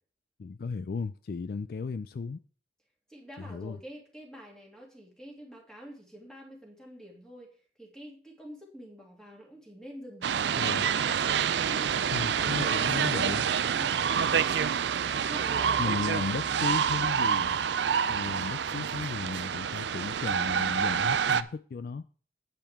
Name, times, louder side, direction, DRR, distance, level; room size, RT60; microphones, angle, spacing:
voice 1, 0.4-2.4 3.4-3.8 10.6-10.8 12.1-13.5 15.8-17.6 18.1-22.0, left 4 dB, 55° left, 0.3 m, -35 dB
voice 2, 3.1-7.5 7.8-11.4 11.7-14.5 15.0-16.9, equal, 5° left, 2.7 m, -47 dB
sound 1, 10.2-21.4, right 7 dB, 75° right, 0.4 m, -27 dB
10.0 x 9.1 x 3.6 m
head